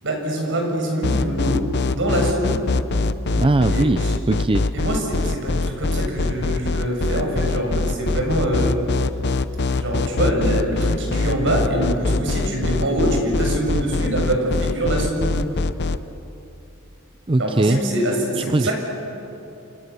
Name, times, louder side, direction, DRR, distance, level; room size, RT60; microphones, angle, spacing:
voice 1, 0.0-2.7 3.7-4.1 4.7-8.7 9.6-15.4 17.4-18.7, right 1 dB, 60° right, 1 dB, 6.7 m, -24 dB
sound 1, 1.0-16.0, left 3 dB, 55° left, 0.8 m, -22 dB
voice 2, 3.3-4.7 17.3-17.8 18.5-18.7, right 2 dB, 25° right, 10 dB, 0.5 m, -20 dB
29.0 x 26.0 x 7.1 m, 2.8 s
head